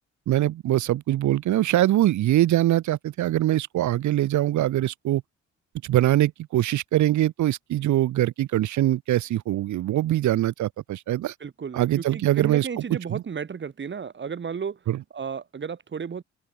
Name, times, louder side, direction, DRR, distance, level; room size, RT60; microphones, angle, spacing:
voice 1, 0.3-5.2 5.8-11.3 11.7-12.8 13.1-13.2 14.9-15.0, right 14 dB, 75° right, 1.1 m, -23 dB
voice 2, 11.4-14.8 15.1-16.2, right 6 dB, 40° right, 2.1 m, -33 dB
open air
cardioid pair, 90°, 30 cm